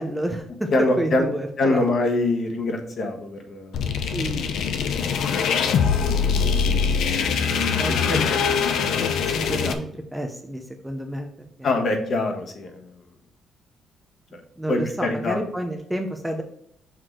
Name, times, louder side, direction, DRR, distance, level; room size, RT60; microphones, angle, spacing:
voice 1, 0.0-0.7 1.0-1.9 4.1-4.5 7.1-7.3 7.8-8.5 9.3-11.3 14.6-16.4, right 1 dB, 5° right, 3 dB, 0.7 m, -30 dB
voice 2, 0.7-1.2 1.6-3.9 8.1-8.2 11.6-12.8 14.3-14.4 14.7-15.4, left 2 dB, 45° left, 4 dB, 1.3 m, -24 dB
sound 1, 3.7-9.7, left 6 dB, 70° left, 0.7 m, -23 dB
6.1 x 4.8 x 4.7 m, 0.67 s
cardioid pair, 155°, 0 cm